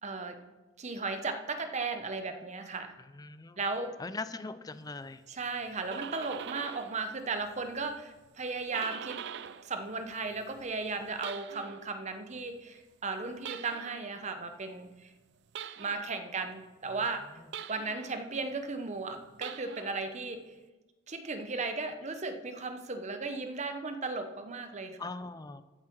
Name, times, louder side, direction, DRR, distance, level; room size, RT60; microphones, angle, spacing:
voice 1, 0.0-0.4 0.8-2.9 3.6-3.9 5.3-9.2 9.6-15.1 15.8-17.2 17.7-20.5 21.1-25.0, right 3 dB, 35° right, 7 dB, 0.9 m, -36 dB
voice 2, 3.1-3.6 4.0-5.2 17.4-17.5 25.0-25.6, left 3 dB, 20° left, 13 dB, 0.4 m, -40 dB
sound 1, 5.6-7.0 7.3-9.7 10.0-11.9 13.4-14.1 15.5-16.2 17.5-18.2 19.3-20.1, right 8 dB, 60° right, 0.4 m, -43 dB
14.5 x 7.4 x 4.5 m, 1.2 s
head